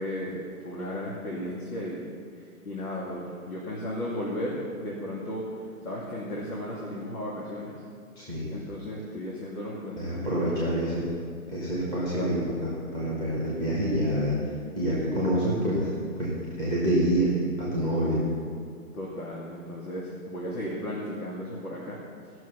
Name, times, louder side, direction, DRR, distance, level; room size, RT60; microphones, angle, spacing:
voice 1, 0.0-2.1 2.6-5.5 5.8-7.8 8.5-10.5 12.0-12.3 18.9-22.0, left 1 dB, 80° left, -5 dB, 2.9 m, -35 dB
voice 2, 8.2-8.5 10.0-11.1 11.5-14.3 14.7-16.3 16.6-17.3 17.6-18.2, right 1 dB, 10° left, -7 dB, 1.4 m, -27 dB
17.0 x 6.3 x 5.8 m, 2.3 s
hypercardioid pair, 160°, 45 cm